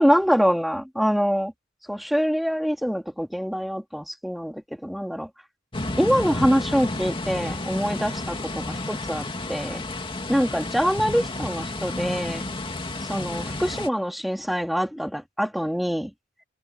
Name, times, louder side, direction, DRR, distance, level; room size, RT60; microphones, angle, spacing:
voice 1, 0.0-1.5 1.9-5.3 6.0-9.8 10.3-12.4 13.0-16.1, equal, ahead, 2.5 m, -24 dB
sound 1, 5.7-13.9, left 2 dB, 25° left, 2.5 m, -31 dB
head